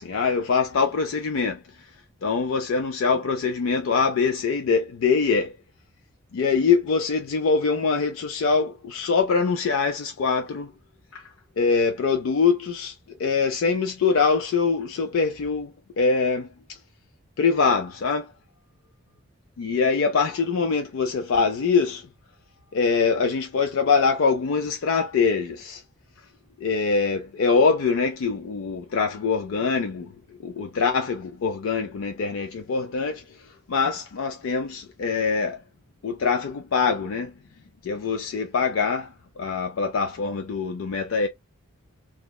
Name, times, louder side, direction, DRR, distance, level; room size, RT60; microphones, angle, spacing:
voice 1, 0.0-5.6 6.3-10.7 11.1-16.8 17.4-18.3 19.6-22.1 22.7-25.8 26.6-35.6 36.0-37.3 37.8-41.3, left 5 dB, 60° left, 0.4 m, -24 dB
3.0 x 2.2 x 2.2 m
head